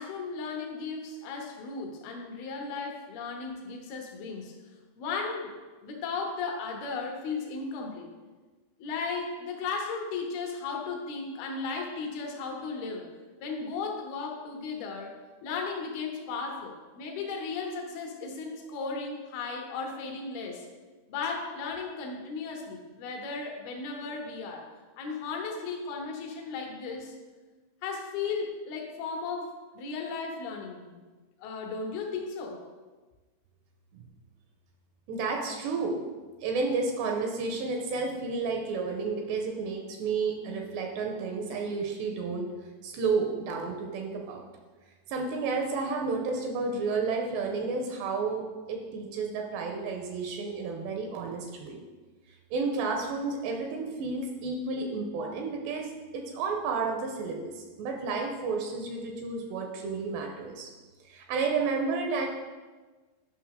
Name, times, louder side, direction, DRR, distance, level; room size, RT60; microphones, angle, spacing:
voice 1, 0.0-4.5 5.0-5.5 5.8-8.1 8.8-13.1 13.4-15.1 15.4-20.7 21.1-24.7 25.0-27.1 27.8-31.0 31.4-32.6, left 4 dB, 70° left, 2 dB, 2.6 m, -35 dB
voice 2, 35.1-36.0 36.4-42.5 42.8-44.4 45.1-51.8 52.5-60.7 61.1-62.3, right 4 dB, 80° right, 2 dB, 2.7 m, -31 dB
10.5 x 5.8 x 3.7 m, 1.3 s
omnidirectional pair, 5.2 m